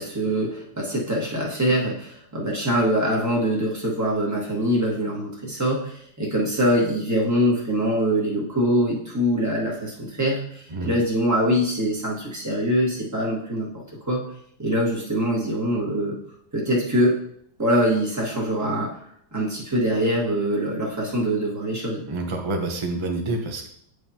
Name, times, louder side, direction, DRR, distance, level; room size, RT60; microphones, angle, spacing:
voice 1, 0.0-13.7 14.1-14.2 14.6-16.2 16.5-17.2 17.6-18.9 19.3-22.0, equal, 10° right, -4 dB, 1.3 m, -23 dB
voice 2, 22.1-23.7, right 2 dB, 30° right, 2 dB, 0.5 m, -27 dB
9.3 x 4.8 x 2.9 m, 0.69 s
omnidirectional pair, 1.9 m